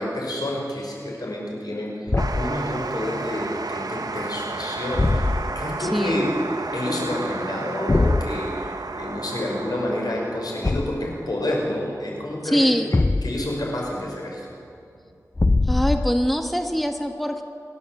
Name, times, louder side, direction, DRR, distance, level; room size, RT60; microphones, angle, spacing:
voice 1, 0.0-6.3 6.7-12.6 12.9-14.5, left 1 dB, 80° left, -2 dB, 5.7 m, -29 dB
Thump thud, 2.1-2.6 4.9-5.6 7.9-8.3 10.6-11.1 12.9-13.6 15.3-16.3, left 2 dB, 35° left, 0.6 m, -22 dB
sound 1, 2.2-15.1, right 3 dB, 75° right, 1.0 m, -33 dB
voice 2, 5.8-6.2 12.4-12.9 15.6-17.4, equal, ahead, 5 dB, 1.3 m, -23 dB
28.5 x 12.0 x 7.7 m, 2.4 s
wide cardioid pair, 60°, 7 cm